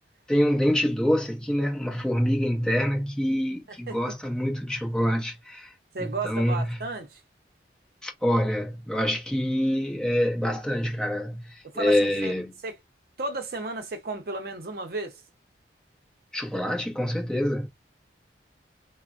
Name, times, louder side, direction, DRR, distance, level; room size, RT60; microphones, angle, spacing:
voice 1, 0.3-5.7 6.0-6.8 8.0-12.6 16.3-17.7, equal, 5° left, 0.7 m, -26 dB
voice 2, 5.9-7.2 11.6-12.3 12.6-12.7 13.2-15.2, right 3 dB, 55° right, 0.6 m, -33 dB
3.3 x 2.1 x 2.4 m
head